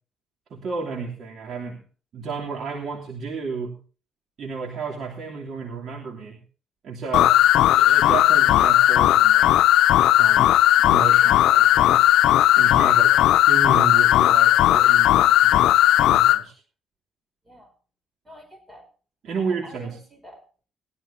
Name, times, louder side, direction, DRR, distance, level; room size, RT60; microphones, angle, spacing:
voice 1, 0.5-1.8 2.1-3.8 4.4-6.4 6.8-7.4 7.7-9.5 10.2-10.5 10.8-12.1 12.6-13.2 13.5-15.8 16.1-16.5 19.2-20.0, right 5 dB, 60° right, -1 dB, 3.1 m, -32 dB
sound 1, 7.1-16.4, left 13 dB, 85° left, 0.5 m, -16 dB
voice 2, 18.2-18.8 19.4-20.6, equal, 25° right, 5 dB, 4.7 m, -47 dB
20.0 x 12.5 x 2.8 m, 0.37 s
cardioid pair, 90°, 0 cm